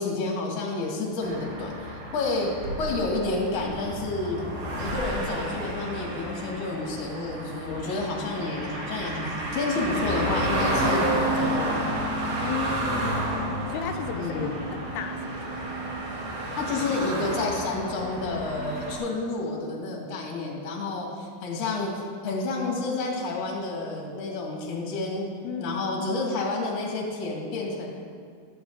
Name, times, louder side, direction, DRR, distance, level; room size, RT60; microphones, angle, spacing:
voice 1, 0.0-2.5 2.8-4.4 4.7-11.0 11.3-11.9 14.1-14.5 16.6-25.3 25.6-27.9, left 3 dB, 45° left, -2 dB, 2.5 m, -30 dB
sound 1, 1.2-19.0, right 1 dB, 55° right, 2.3 m, -31 dB
sound 2, 2.4-4.6 4.9-5.6, right 2 dB, 75° right, 3.0 m, -38 dB
voice 2, 12.4-15.6 25.4-26.1, left 6 dB, 85° left, 5 dB, 2.6 m, -35 dB
15.0 x 12.0 x 2.7 m, 2.1 s
omnidirectional pair, 4.7 m